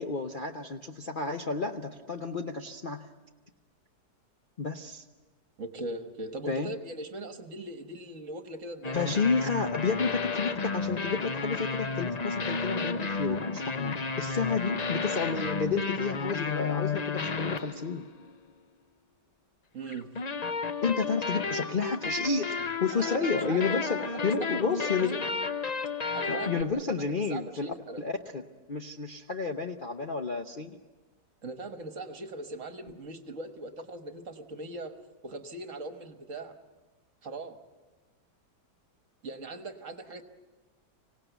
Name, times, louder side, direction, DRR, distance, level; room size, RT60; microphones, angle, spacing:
voice 1, 0.0-3.0 4.6-5.0 6.5-6.7 8.9-18.1 20.8-22.5 22.8-25.2 26.3-28.4 28.7-30.8, left 4 dB, 45° left, 4 dB, 0.7 m, -31 dB
voice 2, 5.6-9.2 19.7-20.1 22.9-25.2 26.1-27.0 27.3-28.0 31.4-35.0 35.2-36.5 37.2-37.6 39.2-40.2, right 2 dB, 50° right, 7 dB, 1.6 m, -40 dB
sound 1, 8.8-18.3 19.9-26.6, left 4 dB, 70° left, 0.3 m, -32 dB
25.5 x 17.5 x 8.1 m, 1.3 s
omnidirectional pair, 1.9 m